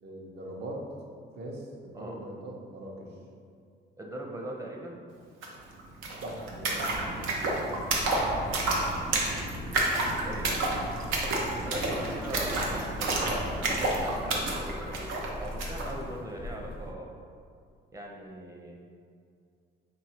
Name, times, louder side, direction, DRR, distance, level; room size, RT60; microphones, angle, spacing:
voice 1, 0.0-0.8 1.3-3.1 6.2-7.2, right 1 dB, 55° right, -2 dB, 0.9 m, -41 dB
voice 2, 4.0-5.0 8.3-8.7 10.2-10.5 11.5-17.1 17.9-18.8, right 1 dB, 15° right, -1 dB, 0.7 m, -40 dB
sound 1, 5.4-5.5 5.7-15.9, right 2 dB, 90° right, 0.7 m, -30 dB
sound 2, 7.9-16.9, left 1 dB, 25° left, 0.4 m, -41 dB
3.9 x 2.6 x 4.4 m, 2.3 s
cardioid pair, 90°, 20 cm